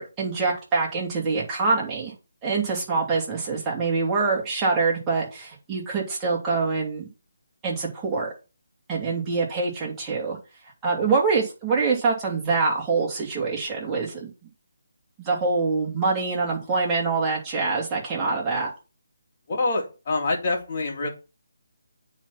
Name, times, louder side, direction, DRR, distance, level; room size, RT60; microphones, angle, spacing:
voice 1, 0.0-2.1 2.4-7.1 7.6-8.3 8.9-10.4 10.8-14.3 15.2-18.7, right 4 dB, 15° right, -4 dB, 2.9 m, -25 dB
voice 2, 19.5-21.1, left 3 dB, 40° left, 1 dB, 2.5 m, -26 dB
8.8 x 4.3 x 5.9 m, 0.30 s
figure-of-eight pair, 155°, 0 cm